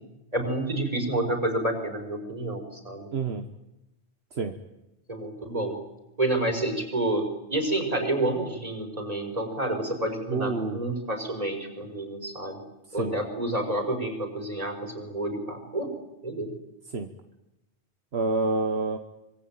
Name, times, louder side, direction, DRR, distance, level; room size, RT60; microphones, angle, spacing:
voice 1, 0.3-3.1 5.1-5.8 6.2-12.6 12.9-15.9 16.2-16.5, right 1 dB, 35° right, 4 dB, 5.3 m, -29 dB
voice 2, 3.1-3.5 4.3-4.5 10.3-10.8 13.0-13.1 16.9-17.1 18.1-19.0, right 3 dB, 70° right, 6 dB, 1.6 m, -27 dB
25.5 x 23.0 x 8.9 m, 0.91 s
omnidirectional pair, 1.1 m